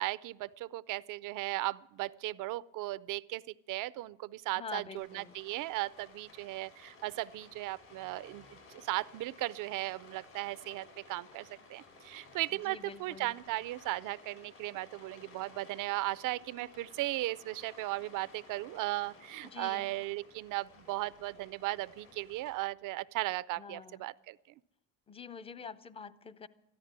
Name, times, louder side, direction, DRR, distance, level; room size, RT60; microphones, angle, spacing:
voice 1, 0.0-8.4 8.7-24.4, right 18 dB, 55° right, 18 dB, 0.5 m, -37 dB
voice 2, 4.5-5.4 12.5-13.4 19.4-20.0 23.6-24.1 25.1-26.5, left 6 dB, 15° left, 14 dB, 0.5 m, -46 dB
Rain, 5.0-22.5, left 4 dB, 70° left, 6.4 m, -57 dB
14.0 x 12.0 x 7.4 m, 0.88 s
supercardioid pair, 105°, 38 cm